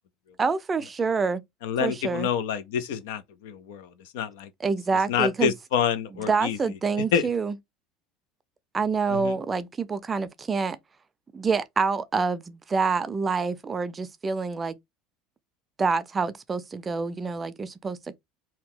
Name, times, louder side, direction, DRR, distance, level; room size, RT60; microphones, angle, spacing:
voice 1, 0.4-1.4 1.8-2.3 4.6-5.5 6.3-7.6 8.7-10.8 11.3-14.8 15.8-18.2, right 4 dB, 25° right, 0.5 m, -27 dB
voice 2, 1.6-3.9 4.1-4.5 5.1-6.6 7.1-7.2 9.1-9.4, left 8 dB, 80° left, 0.6 m, -27 dB
2.8 x 2.2 x 3.8 m
supercardioid pair, 95°, 0 cm